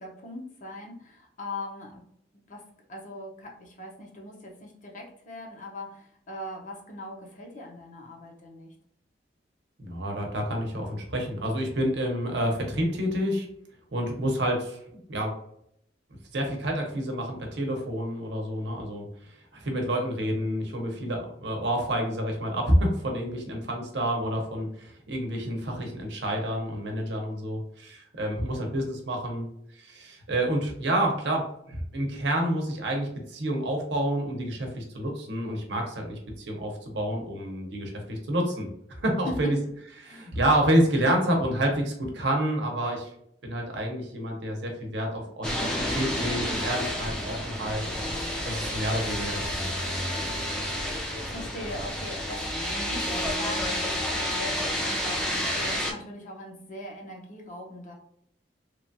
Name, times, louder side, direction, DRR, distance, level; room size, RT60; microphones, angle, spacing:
voice 1, 0.0-2.0 2.5-2.6 2.9-8.7 39.3-39.5 40.0-40.3 50.7-57.9, left 2 dB, 45° left, 0 dB, 0.7 m, -40 dB
voice 2, 9.8-13.5 13.9-14.8 15.1-15.3 16.3-19.0 19.5-29.5 29.8-38.7 39.0-39.6 40.0-43.1 43.4-45.6 45.9-47.8 48.4-50.3, right 1 dB, 80° right, 1 dB, 0.8 m, -28 dB
sound 1, 45.4-55.9, equal, 5° left, 0.5 m, -30 dB
3.0 x 2.3 x 2.6 m, 0.72 s
head